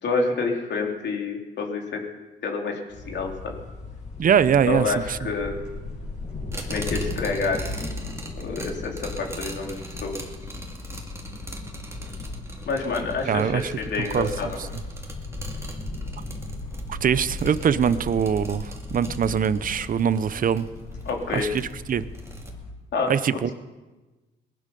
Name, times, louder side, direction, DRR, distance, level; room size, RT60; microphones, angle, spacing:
voice 1, 0.0-2.0 2.4-2.8 3.1-3.5 4.6-5.6 6.7-7.7 8.3-10.2 12.7-14.6 21.0-21.5 22.9-23.1, left 4 dB, 60° left, 1 dB, 3.4 m, -28 dB
sound 1, 2.9-22.7, left 2 dB, 35° left, 5.2 m, -36 dB
voice 2, 4.2-5.2 13.3-13.7 14.0-14.3 16.9-20.7 21.3-22.0 23.1-23.5, right 8 dB, 45° right, 15 dB, 0.7 m, -23 dB
sound 2, 6.5-22.5, right 2 dB, 15° right, 2.4 m, -43 dB
19.5 x 11.5 x 5.5 m, 1.2 s
cardioid pair, 90°, 20 cm